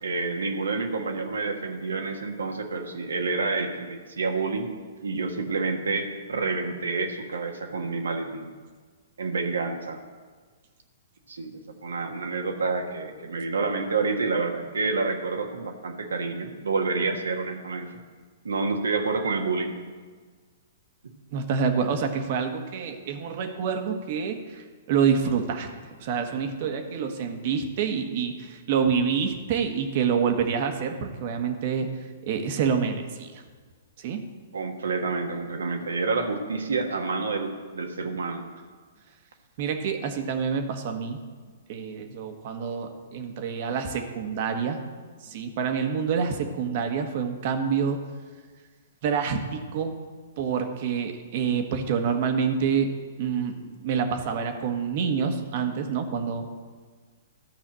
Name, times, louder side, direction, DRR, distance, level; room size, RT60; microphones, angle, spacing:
voice 1, 0.0-4.7 5.0-8.5 9.2-10.0 11.3-17.9 18.4-19.8 34.5-38.5, right 4 dB, 80° right, 4 dB, 1.4 m, -28 dB
voice 2, 21.3-25.7 26.0-31.9 32.3-33.4 34.0-34.2 39.6-41.2 41.7-44.8 45.2-48.0 49.0-50.0 50.4-52.9 53.2-56.5, right 6 dB, 50° right, 6 dB, 1.4 m, -27 dB
12.0 x 5.7 x 7.6 m, 1.5 s
hypercardioid pair, 120°, 0 cm